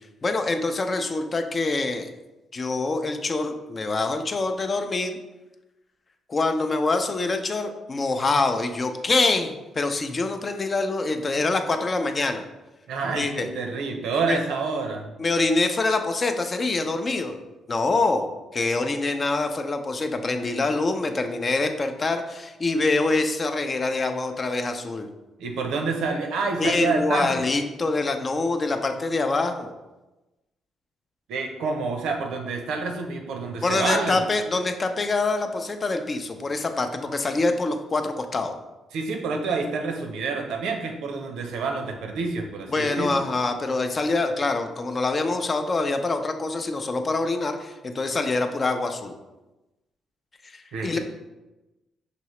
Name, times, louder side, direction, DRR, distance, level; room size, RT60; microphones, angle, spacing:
voice 1, 0.2-2.1 2.5-5.2 6.3-12.4 13.1-13.5 14.2-14.4 15.2-17.4 17.7-25.1 26.6-29.7 33.6-38.5 42.7-49.2 50.4-51.0, left 3 dB, 35° left, 7 dB, 0.5 m, -25 dB
voice 2, 12.9-15.1 25.4-27.5 31.3-34.2 38.9-43.2 50.7-51.0, right 4 dB, 85° right, 3 dB, 0.7 m, -28 dB
5.9 x 2.8 x 3.1 m, 1.0 s
cardioid pair, 90°, 0 cm